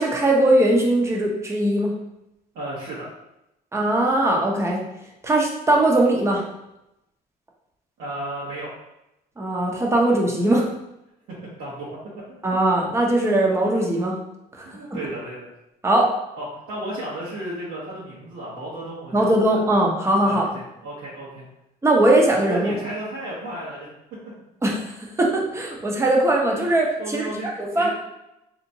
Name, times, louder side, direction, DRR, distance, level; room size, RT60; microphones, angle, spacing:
voice 1, 0.0-1.9 3.7-4.8 5.2-6.4 9.4-10.6 12.4-14.2 14.6-14.7 15.8-16.1 19.1-20.5 21.8-22.7 24.6-27.9, right 1 dB, 15° right, -1 dB, 0.7 m, -20 dB
voice 2, 2.5-3.1 8.0-8.7 11.6-11.9 14.6-15.5 16.4-19.3 20.2-21.4 22.5-23.9 27.0-27.5 27.7-27.9, right 1 dB, 75° right, -9 dB, 1.1 m, -33 dB
3.3 x 2.9 x 2.7 m, 0.88 s
cardioid pair, 110°, 17 cm